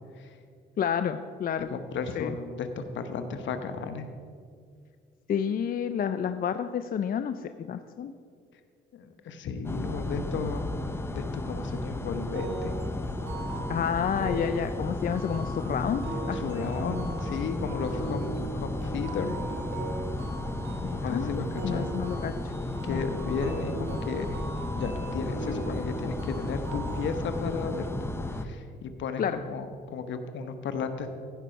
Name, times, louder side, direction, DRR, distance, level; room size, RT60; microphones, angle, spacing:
voice 1, 0.8-1.7 2.2-2.4 5.3-8.1 13.7-16.0 16.3-16.4 20.8-21.3 21.6-22.5 22.9-23.0 29.2-29.4, left 8 dB, 45° left, 10 dB, 0.4 m, -30 dB
voice 2, 1.6-4.1 8.9-10.7 11.1-12.7 16.3-19.4 21.0-21.9 22.8-24.4 24.8-27.9 28.3-31.1, left 5 dB, 70° left, 8 dB, 1.0 m, -34 dB
sound 1, 9.6-28.4, left 2 dB, 10° left, 0.7 m, -34 dB
sound 2, 12.3-27.1, right 2 dB, 85° right, 2.6 m, -39 dB
15.5 x 5.5 x 5.3 m, 2.2 s
cardioid pair, 90°, 20 cm